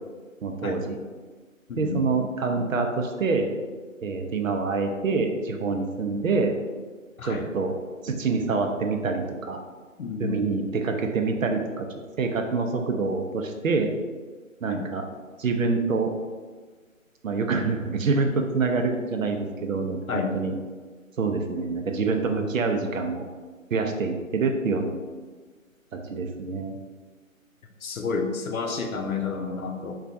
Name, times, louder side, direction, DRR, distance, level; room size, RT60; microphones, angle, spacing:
voice 1, 0.4-1.0 1.8-3.5 4.0-6.5 7.2-7.8 8.0-9.6 10.2-11.9 12.2-13.9 14.6-15.0 15.4-16.1 17.2-20.5 21.2-23.3 23.7-24.9 25.9-26.8, right 4 dB, 70° right, 4 dB, 0.6 m, -26 dB
voice 2, 1.7-2.1 7.2-7.4 10.0-10.5 14.7-14.9 20.1-20.4 27.8-29.9, left 5 dB, 85° left, 4 dB, 0.7 m, -30 dB
4.5 x 2.4 x 2.6 m, 1.4 s
figure-of-eight pair, 160°, 41 cm